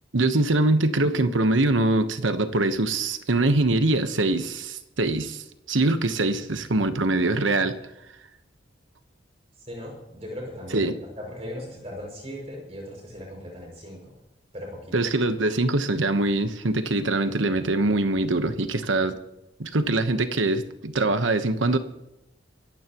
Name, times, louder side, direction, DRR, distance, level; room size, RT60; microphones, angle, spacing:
voice 1, 0.1-7.7 10.7-10.9 14.9-19.2 19.6-21.8, right 2 dB, 90° right, 9 dB, 1.1 m, -23 dB
voice 2, 9.7-14.2 14.5-14.9, equal, 35° right, 0 dB, 6.2 m, -38 dB
25.0 x 15.0 x 3.0 m, 0.87 s
head